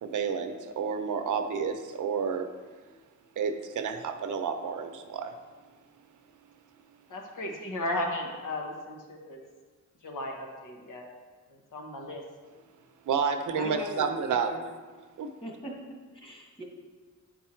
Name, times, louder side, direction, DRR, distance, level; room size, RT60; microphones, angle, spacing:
voice 1, 0.0-2.5 3.4-5.4 13.1-14.5 15.2-15.3, right 6 dB, 75° right, 7 dB, 0.7 m, -30 dB
voice 2, 7.1-9.5 10.0-11.1 11.7-12.2, left 1 dB, 80° left, 1 dB, 1.5 m, -35 dB
voice 3, 13.5-14.6 15.4-16.6, equal, 15° left, -2 dB, 1.6 m, -40 dB
9.3 x 4.6 x 4.5 m, 1.4 s
wide cardioid pair, 145°, 31 cm